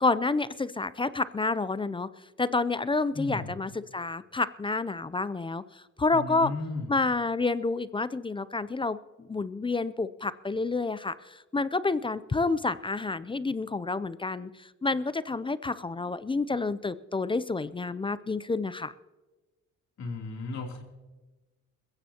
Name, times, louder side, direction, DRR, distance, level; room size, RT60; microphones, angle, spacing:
voice 1, 0.0-2.1 2.4-6.5 6.9-18.9, left 3 dB, 15° left, 16 dB, 0.4 m, -29 dB
voice 2, 3.1-3.5 6.1-6.9 20.0-20.8, left 3 dB, 65° left, 1 dB, 3.0 m, -35 dB
21.5 x 15.5 x 2.9 m, 1.2 s
cardioid pair, 90°, 30 cm